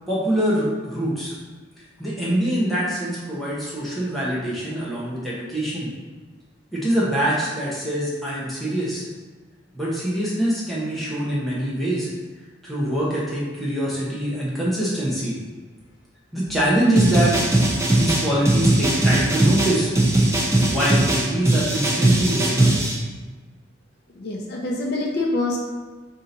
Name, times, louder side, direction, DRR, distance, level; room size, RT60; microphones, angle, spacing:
voice 1, 0.1-1.3 2.0-5.9 6.7-9.0 9.7-12.1 12.6-15.4 16.3-17.3 17.9-19.9 20.7-22.7, right 1 dB, ahead, -8 dB, 0.9 m, -24 dB
sound 1, 17.0-23.0, right 1 dB, 15° right, 0.5 m, -19 dB
voice 2, 24.2-25.6, left 2 dB, 50° left, -1 dB, 0.5 m, -25 dB
3.7 x 2.7 x 3.9 m, 1.3 s
head